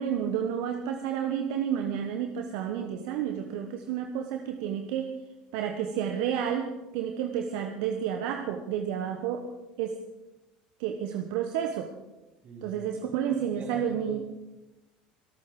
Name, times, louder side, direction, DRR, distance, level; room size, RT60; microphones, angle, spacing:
voice 1, 0.0-5.1 5.5-9.5 9.8-10.0 10.8-11.9 12.6-14.2, right 8 dB, 70° right, 5 dB, 1.2 m, -30 dB
voice 2, 12.4-12.8 13.6-14.2, right 5 dB, 40° right, 0 dB, 4.6 m, -42 dB
24.5 x 8.7 x 4.8 m, 1.0 s
hypercardioid pair, 80°, 4 cm